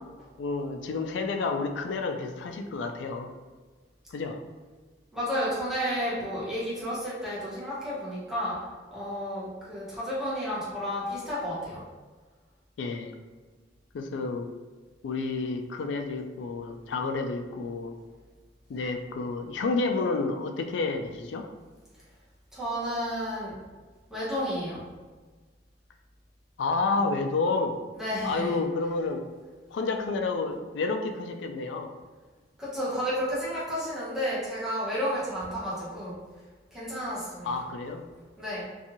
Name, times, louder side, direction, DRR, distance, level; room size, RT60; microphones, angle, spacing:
voice 1, 0.4-3.3 4.1-4.4 12.8-13.1 13.9-14.5 15.0-17.9 18.7-21.5 26.6-27.8 28.2-29.3 29.7-31.9 37.4-38.0, left 3 dB, 85° left, 5 dB, 0.3 m, -30 dB
voice 2, 5.1-8.6 8.9-11.8 22.5-23.6 24.1-24.8 27.9-28.6 32.6-36.2 36.7-37.5 38.4-38.7, equal, 5° right, -10 dB, 0.9 m, -31 dB
2.6 x 2.3 x 2.8 m, 1.3 s
head